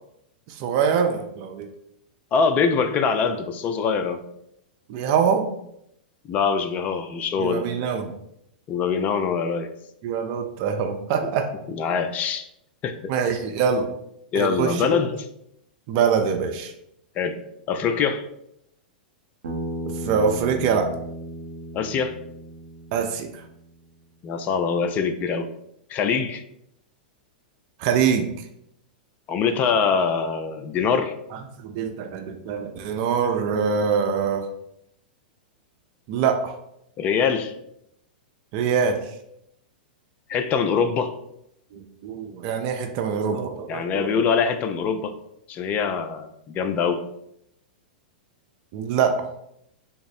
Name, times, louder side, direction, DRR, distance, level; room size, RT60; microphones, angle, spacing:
voice 1, 0.5-1.7 4.9-5.5 7.4-8.1 10.0-11.5 13.1-13.9 14.3-14.9 15.9-16.7 20.0-20.9 22.9-23.4 27.8-28.3 31.6-34.5 36.1-36.6 38.5-39.0 41.7-44.2 48.7-49.2, right 6 dB, 45° right, 5 dB, 0.4 m, -24 dB
voice 2, 2.3-4.2 6.3-7.7 8.7-9.7 11.2-11.3 11.7-12.5 12.8-13.0 14.3-15.3 17.2-17.4 17.7-18.2 21.7-22.1 24.2-25.5 25.9-26.4 29.3-31.1 37.0-37.5 40.3-41.1 43.7-45.2 45.5-47.0, left 6 dB, 30° left, 9 dB, 0.4 m, -23 dB
Bass guitar, 19.4-23.7, right 1 dB, 80° right, 0.7 m, -35 dB
3.5 x 2.0 x 4.1 m, 0.76 s
hypercardioid pair, 115°, 5 cm